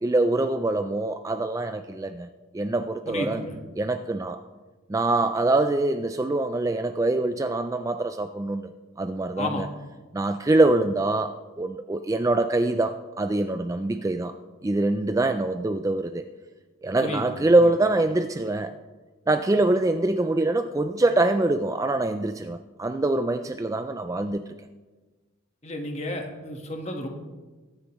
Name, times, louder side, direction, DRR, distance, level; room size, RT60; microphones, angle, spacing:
voice 1, 0.0-2.3 2.5-3.4 3.8-4.4 4.9-8.7 9.0-9.7 10.1-14.3 14.6-16.3 16.8-18.8 19.3-24.4, right 2 dB, 15° right, 8 dB, 0.3 m, -24 dB
voice 2, 3.1-3.5 9.4-9.6 17.0-17.7 25.6-27.1, left 1 dB, 30° left, 3 dB, 1.4 m, -32 dB
22.5 x 9.6 x 3.1 m, 1.3 s
head